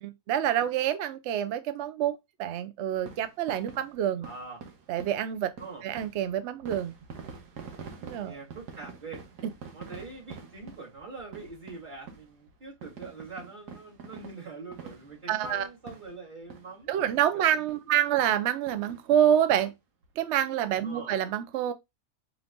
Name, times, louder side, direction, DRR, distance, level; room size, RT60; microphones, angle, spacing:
voice 1, 0.0-4.3 4.9-5.5 5.8-6.9 8.0-8.4 15.3-15.7 16.9-19.7 20.2-21.7, right 10 dB, 70° right, 0.6 m, -27 dB
sound 1, 2.9-16.8 17.1-17.3 17.7-17.8 18.2-18.4 18.7-19.6 20.0-20.1 20.3-20.4, right 5 dB, 85° right, 1.5 m, -46 dB
voice 2, 4.2-4.6 5.6-5.8 8.2-9.2 9.7-18.0 20.8-21.1, right 3 dB, 30° right, 2.9 m, -44 dB
5.0 x 3.2 x 2.5 m
omnidirectional pair, 1.7 m